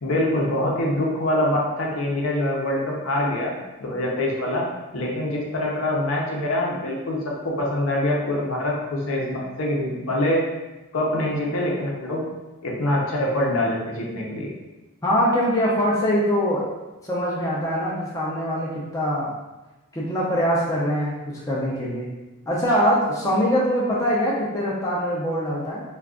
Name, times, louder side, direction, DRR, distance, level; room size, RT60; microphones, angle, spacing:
voice 1, 0.0-3.5 3.8-4.6 4.9-10.4 10.9-12.2 12.6-14.5, left 1 dB, 65° left, -2 dB, 0.7 m, -24 dB
voice 2, 15.0-16.7 17.1-19.3 19.9-21.1 21.5-22.1 22.5-25.8, equal, 15° left, -6 dB, 0.4 m, -23 dB
2.4 x 2.3 x 3.5 m, 1.1 s
head